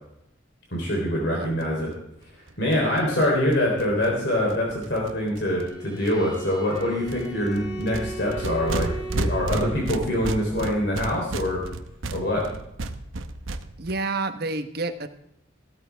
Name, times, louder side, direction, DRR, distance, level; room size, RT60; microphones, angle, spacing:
voice 1, 0.7-1.9 2.6-11.6 12.1-12.5, left 1 dB, 60° left, -2 dB, 3.5 m, -24 dB
sound 1, 1.6-1.7 1.9-2.0 2.2-2.3 2.5-5.7 6.1-6.4 6.7-13.9, right 2 dB, 90° right, 0.9 m, -33 dB
Bowed string instrument, 5.6-10.3, right 1 dB, 20° left, 2.4 m, -38 dB
voice 2, 13.8-15.1, right 3 dB, 50° right, 8 dB, 1.1 m, -29 dB
15.5 x 13.5 x 3.4 m, 0.79 s
head